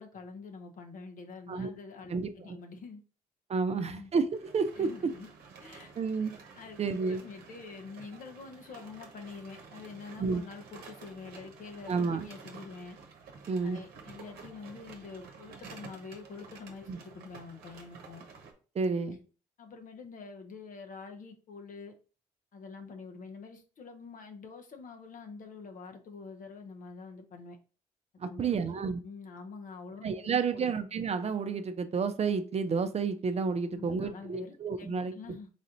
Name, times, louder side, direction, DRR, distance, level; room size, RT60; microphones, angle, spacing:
voice 1, 0.0-3.0 3.7-4.1 4.8-5.3 5.6-5.9 6.5-13.0 13.6-18.2 19.6-21.9 22.5-27.6 28.2-28.7 29.0-30.7 33.7-35.5, left 4 dB, 60° left, 0.9 m, -46 dB
voice 2, 2.1-2.6 3.5-4.9 6.0-6.3 6.8-7.2 10.2-10.4 11.9-12.3 13.5-13.8 16.9-17.0 18.8-19.2 28.2-29.0 30.0-35.1, right 5 dB, 45° right, 0.5 m, -30 dB
sound 1, 4.3-18.5, right 5 dB, 80° right, 0.9 m, -51 dB
4.1 x 2.5 x 4.3 m
supercardioid pair, 50°, 16 cm